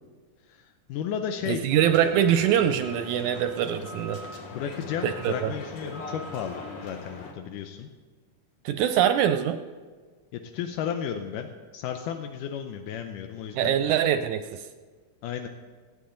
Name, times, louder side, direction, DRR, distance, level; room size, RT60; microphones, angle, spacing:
voice 1, 0.5-1.7 4.5-7.9 10.3-13.7 15.2-15.5, left 8 dB, 80° left, 6 dB, 2.2 m, -33 dB
voice 2, 1.5-4.2 5.0-5.5 8.7-9.6 13.6-14.6, right 10 dB, 80° right, 9 dB, 1.9 m, -23 dB
sound 1, 1.7-7.3, left 2 dB, 55° left, 2.0 m, -41 dB
25.0 x 8.7 x 3.8 m, 1.5 s
omnidirectional pair, 3.7 m